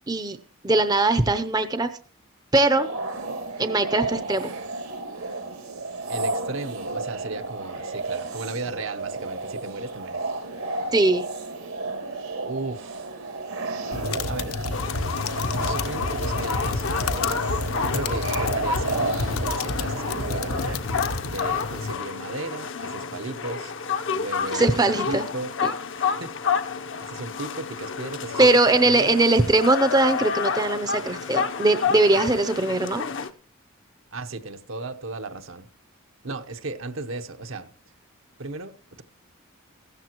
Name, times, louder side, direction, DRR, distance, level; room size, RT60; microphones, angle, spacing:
voice 1, 0.1-0.4 0.6-1.9 2.5-2.9 3.6-4.5 10.9-11.3 24.5-25.2 28.4-33.0, right 2 dB, 20° right, 0.6 m, -20 dB
sound 1, 2.6-20.8, right 3 dB, 90° right, 2.6 m, -32 dB
voice 2, 6.1-10.3 12.4-13.1 14.3-14.6 15.6-17.4 17.8-20.7 21.2-23.7 24.1-25.5 26.0-26.3 27.0-29.2 34.1-35.7 36.2-37.7 38.4-39.0, right 2 dB, 65° right, 1.0 m, -35 dB
sound 2, 13.9-21.9, left 3 dB, 90° left, 1.0 m, -30 dB
sound 3, 14.7-33.3, left 5 dB, 60° left, 0.8 m, -30 dB
16.0 x 13.5 x 3.0 m
head